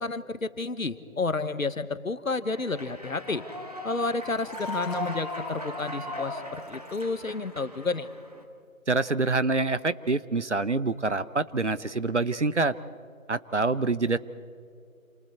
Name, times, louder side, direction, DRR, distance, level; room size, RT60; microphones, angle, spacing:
voice 1, 0.0-3.4 3.8-8.1, left 3 dB, 70° left, 13 dB, 1.3 m, -31 dB
Human voice / Clapping / Cheering, 2.4-8.4, left 1 dB, 25° right, 1.6 m, -38 dB
Liquid, 4.2-7.5 7.8-8.1, left 1 dB, 25° left, 6.0 m, -51 dB
voice 2, 8.9-12.7 13.3-14.2, right 3 dB, 55° right, 16 dB, 0.8 m, -26 dB
28.5 x 27.5 x 4.3 m, 2.4 s
figure-of-eight pair, 180°, 42 cm